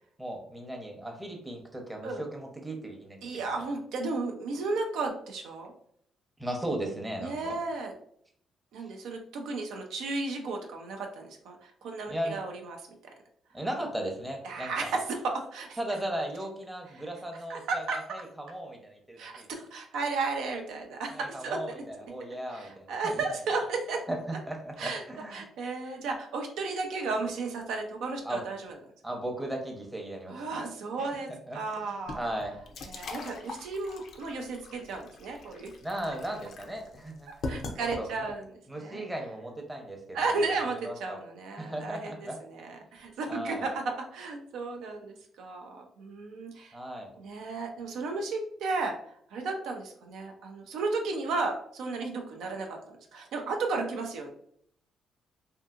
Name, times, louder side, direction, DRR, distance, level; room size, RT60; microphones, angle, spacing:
voice 1, 0.2-3.4 6.4-7.6 12.1-12.4 13.5-14.9 15.8-19.5 21.1-23.2 24.1-25.4 28.2-28.4 29.0-30.4 31.0-31.2 31.5-32.6 35.8-38.3 38.7-40.2 40.8-41.2 41.6-42.4 42.9-43.0 43.3-43.7 46.7-47.1, right 1 dB, 10° right, 1 dB, 0.7 m, -37 dB
voice 2, 3.2-5.7 7.2-7.9 8.7-12.8 14.4-15.8 17.5-18.0 19.2-21.6 22.5-24.0 24.8-25.0 25.3-28.8 30.3-32.2 32.9-35.7 37.5-38.4 38.8-39.0 40.1-46.8 47.2-49.0 49.3-52.8 53.1-54.3, right 3 dB, 85° right, 3 dB, 0.4 m, -34 dB
sound 1, 32.1-38.4, left 3 dB, 65° left, 0.4 m, -41 dB
2.6 x 2.6 x 2.4 m, 0.65 s
cardioid pair, 90°, 0 cm